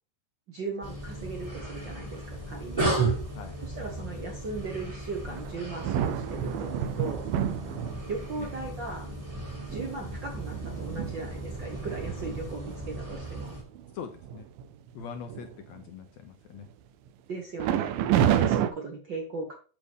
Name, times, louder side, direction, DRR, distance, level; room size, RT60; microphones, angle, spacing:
voice 1, 0.5-2.9 3.6-7.3 8.1-9.1 9.7-13.6 17.3-19.5, right 3 dB, 60° right, 1 dB, 1.2 m, -37 dB
sound 1, 0.8-13.6, right 2 dB, 15° right, 1.2 m, -35 dB
sound 2, 5.4-8.4 9.0-9.2 9.6-13.3 13.8-13.9 14.2-14.6 15.0-15.8 17.6-18.7, right 10 dB, 90° right, 2.5 m, -30 dB
voice 2, 13.9-14.5 14.9-16.7, left 7 dB, 75° left, 6 dB, 1.6 m, -42 dB
8.5 x 6.9 x 3.5 m, 0.37 s
omnidirectional pair, 4.0 m